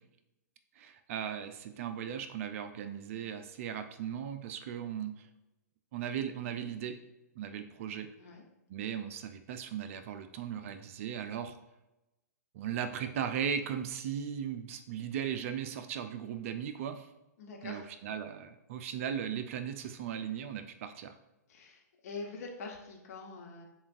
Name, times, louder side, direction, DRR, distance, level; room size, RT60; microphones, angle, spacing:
voice 1, 0.8-5.3 5.9-6.9 7.4-8.1 8.7-11.6 12.5-17.1 17.6-21.1, right 8 dB, 50° right, 8 dB, 0.4 m, -37 dB
voice 2, 17.4-17.9 21.5-23.6, left 3 dB, 60° left, 1 dB, 1.0 m, -44 dB
6.9 x 2.4 x 2.5 m, 0.94 s
hypercardioid pair, 120°, 9 cm